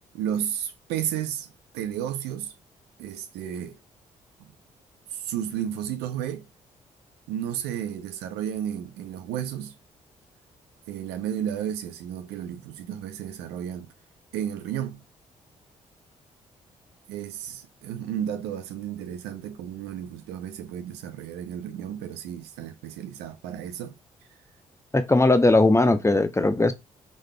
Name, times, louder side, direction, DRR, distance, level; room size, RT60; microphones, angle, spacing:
voice 1, 0.1-1.5 1.7-2.5 3.0-3.8 4.4-4.5 5.1-6.5 7.3-9.7 10.9-13.9 14.3-15.0 17.1-23.9, right 10 dB, 75° right, 0.6 m, -32 dB
voice 2, 24.9-26.7, left 2 dB, 15° left, 0.7 m, -19 dB
5.2 x 3.7 x 2.2 m
hypercardioid pair, 45°, 17 cm